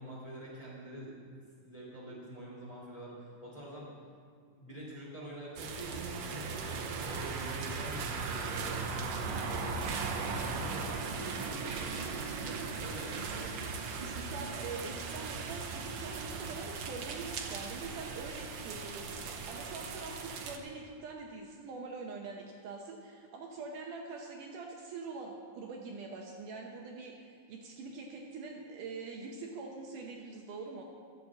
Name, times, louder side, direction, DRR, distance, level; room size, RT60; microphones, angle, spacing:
voice 1, 0.0-3.9 4.6-13.5 13.8-14.0, equal, 10° left, -5 dB, 2.5 m, -46 dB
sound 1, 5.6-20.6, right 5 dB, 85° right, 1.4 m, -38 dB
voice 2, 13.8-30.8, right 4 dB, 70° right, 1 dB, 2.3 m, -44 dB
13.0 x 6.9 x 7.5 m, 2.2 s
omnidirectional pair, 4.1 m